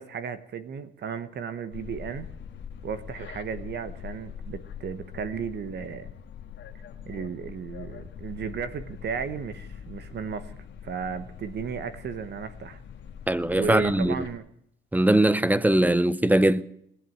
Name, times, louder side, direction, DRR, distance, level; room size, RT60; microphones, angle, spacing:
voice 1, 0.0-2.3 2.8-6.1 7.1-10.6 10.8-12.8 13.5-14.5, right 6 dB, 60° right, 1.0 m, -34 dB
sound 1, 1.7-14.4, left 8 dB, 65° left, 1.7 m, -43 dB
voice 2, 13.3-14.2 14.9-16.6, right 1 dB, 10° right, 0.6 m, -21 dB
20.0 x 7.9 x 9.0 m
cardioid pair, 90°, 20 cm